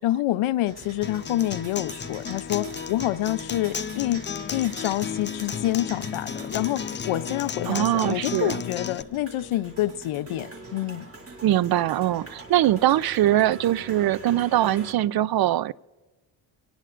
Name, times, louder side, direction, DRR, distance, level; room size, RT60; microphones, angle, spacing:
voice 1, 0.0-4.2 4.5-11.1, left 14 dB, 80° left, 14 dB, 0.7 m, -27 dB
sound 1, 0.7-14.9, right 2 dB, 30° right, 2.5 m, -43 dB
Acoustic guitar, 1.0-9.0, left 7 dB, 25° left, 0.4 m, -34 dB
voice 2, 7.7-8.6 11.4-15.7, right 13 dB, 50° right, 20 dB, 0.5 m, -22 dB
24.0 x 18.5 x 2.5 m, 1.2 s
cardioid pair, 105°, 48 cm